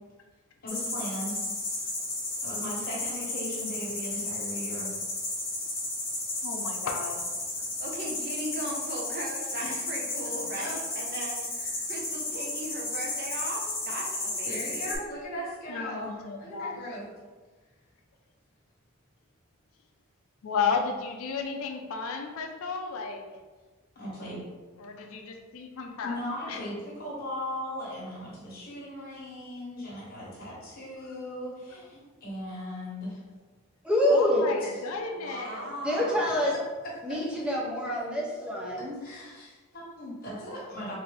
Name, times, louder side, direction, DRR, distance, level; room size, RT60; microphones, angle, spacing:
voice 1, 0.6-1.4 2.4-5.0 9.6-9.8 10.6-10.8 11.6-11.8 14.4-16.1 16.4-17.0 23.9-24.4 26.0-33.2 34.6-34.7 36.5-37.5 38.8-40.9, equal, 45° left, -5 dB, 1.3 m, -38 dB
sound 1, 0.7-15.0, left 2 dB, 30° left, 1.0 m, -33 dB
voice 2, 6.4-7.3 10.4-10.5 15.7-16.8 20.4-23.2 24.8-26.6 31.0-31.1 34.1-35.7, left 5 dB, 75° left, 3 dB, 0.4 m, -33 dB
voice 3, 7.8-11.5 11.9-15.0 35.2-36.4, right 1 dB, 50° right, -2 dB, 0.7 m, -38 dB
voice 4, 33.8-34.5 35.8-36.5 37.0-39.0, left 1 dB, 5° right, -4 dB, 0.5 m, -26 dB
4.0 x 2.6 x 3.2 m, 1.3 s
head